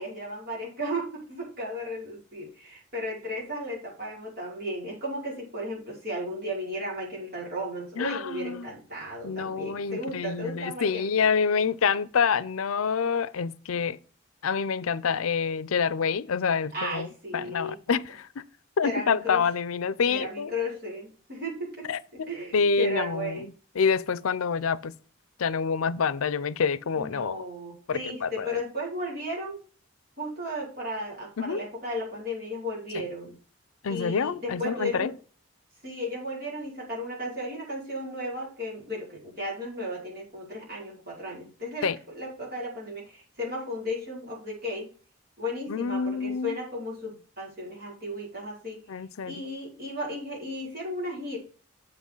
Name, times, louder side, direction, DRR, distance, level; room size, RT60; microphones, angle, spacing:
voice 1, 0.0-11.3 16.7-17.8 18.8-19.4 20.1-23.5 26.9-29.6 30.2-33.3 33.9-35.1 35.8-44.9 45.4-48.8 49.2-51.4, equal, 45° right, 5.0 m, -35 dB
voice 2, 8.0-8.7 9.2-14.0 14.4-17.1 17.3-18.3 18.8-20.5 21.9-22.3 22.5-23.5 23.8-24.9 25.4-27.5 27.9-28.6 31.4-31.6 32.9-33.0 33.8-35.1 41.8-42.0 45.7-46.6 48.9-49.3, left 6 dB, 85° left, 0.5 m, -27 dB
7.8 x 6.4 x 5.4 m
head